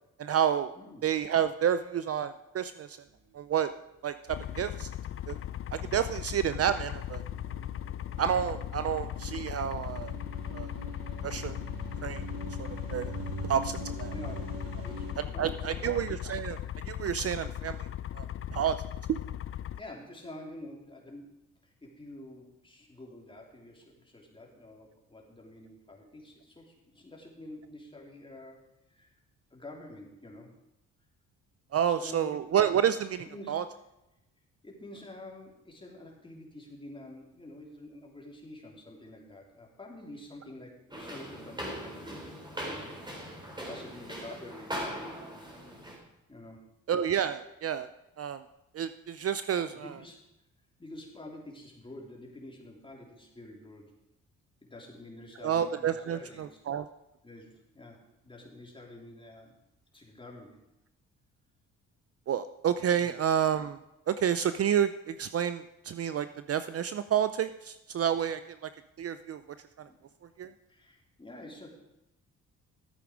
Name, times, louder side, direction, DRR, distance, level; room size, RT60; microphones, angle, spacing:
voice 1, 0.2-0.7 1.0-3.0 3.3-3.7 4.0-4.9 5.3-5.4 5.9-7.2 8.2-10.1 10.5-10.7 11.2-11.6 12.0-12.2 12.6-13.1 13.5-14.1 15.4-16.6 16.9-17.9 18.1-18.3 18.5-18.8 31.7-33.6 46.9-47.9 48.2-48.4 48.7-49.9 55.4-56.8 62.3-63.8 64.1-68.7 69.0-69.4 70.4-70.5, right 9 dB, 45° right, 12 dB, 0.5 m, -29 dB
sound 1, 4.3-19.8, left 11 dB, 45° left, 0.4 m, -38 dB
sound 2, 6.2-15.1, right 4 dB, 85° right, 2.0 m, -44 dB
voice 2, 14.1-14.5 14.8-16.0 19.7-21.3 21.6-28.6 28.9-29.1 29.5-30.5 31.8-32.5 33.2-33.6 34.6-42.4 42.6-42.9 43.6-44.8 46.3-46.7 49.7-50.2 50.8-54.0 54.6-56.6 57.2-59.6 59.9-60.6 62.9-63.1 69.9-70.0 70.7-71.7, left 1 dB, 15° left, -1 dB, 3.3 m, -48 dB
sound 3, 40.9-46.0, equal, 15° right, 3.4 m, -40 dB
13.0 x 8.4 x 5.1 m, 0.91 s
cardioid pair, 85°, 33 cm